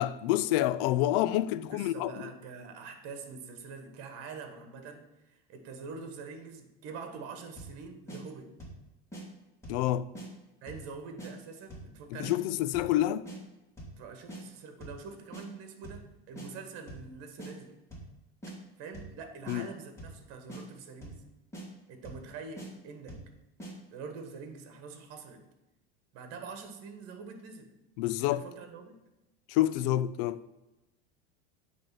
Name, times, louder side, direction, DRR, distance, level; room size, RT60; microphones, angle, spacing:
voice 1, 0.0-2.1 9.7-10.1 12.2-13.2 19.5-19.7 28.0-28.4 29.5-30.4, left 14 dB, 60° left, 0.5 m, -28 dB
voice 2, 1.7-8.5 10.6-12.4 14.0-17.7 18.8-21.2 21.9-23.3 23.9-25.4 26.1-27.7 28.3-29.0, right 5 dB, 50° right, 1.5 m, -45 dB
sound 1, 7.6-7.8 8.1-8.2 8.6-8.8 9.1-9.2 9.6-9.9 10.1-10.3 10.7-10.9 11.2-11.3 11.7-11.9 12.2-12.3 12.7-13.0 13.2-13.4 13.8-14.0 14.3-14.4 14.8-15.0 15.3-15.4 15.8-16.1 16.4-16.5 16.9-17.1 17.4-17.5 17.9-18.1 18.4-18.5 18.9-19.2 19.5-19.6 20.0-20.2 20.5-20.6 21.0-21.2 21.5-21.7 22.0-22.3 22.6-22.7 23.1-23.3 23.6-23.7, right 2 dB, 10° left, 2.5 m, -43 dB
8.7 x 3.5 x 6.0 m
supercardioid pair, 115°, 31 cm